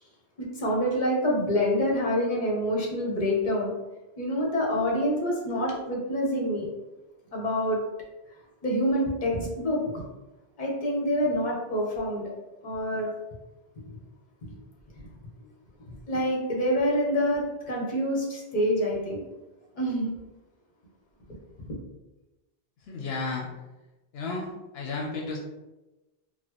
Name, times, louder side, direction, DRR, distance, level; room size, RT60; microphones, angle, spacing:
voice 1, 0.4-3.7 4.2-6.7 7.3-7.8 8.6-10.0 10.6-12.3 12.6-13.1 16.1-19.2 19.8-20.1 21.6-21.7, equal, 50° left, -2 dB, 1.0 m, -26 dB
voice 2, 22.9-23.5 24.1-24.5 24.7-25.4, left 3 dB, 85° left, -1 dB, 0.8 m, -32 dB
4.0 x 2.1 x 3.0 m, 1.1 s
omnidirectional pair, 1.0 m